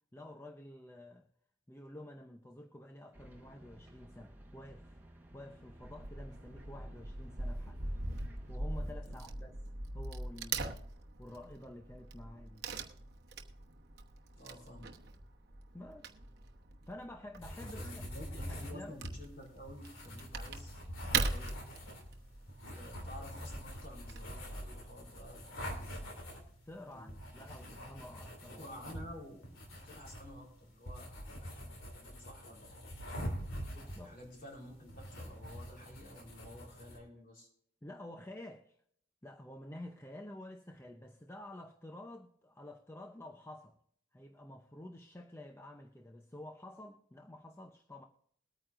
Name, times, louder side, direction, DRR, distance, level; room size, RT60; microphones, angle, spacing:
voice 1, 0.1-1.3 1.7-5.0 5.3-7.8 8.5-9.6 9.9-12.6 15.7-16.2 16.9-18.0 18.3-18.9 26.6-28.7 33.7-34.2 37.8-38.8 39.2-43.8 44.1-48.1, left 1 dB, 10° left, 0.6 m, -50 dB
sound 1, 3.1-8.6, right 1 dB, 10° right, 1.2 m, -55 dB
Wood / Tearing, 5.8-25.4, right 3 dB, 50° right, 1.0 m, -42 dB
voice 2, 14.4-15.0 17.7-21.6 22.7-25.9 26.9-27.2 28.6-33.0 33.5-37.5, left 1 dB, 45° left, 3.9 m, -52 dB
sound 2, 17.4-37.0, equal, 90° left, 2.7 m, -45 dB
22.0 x 9.2 x 2.5 m
head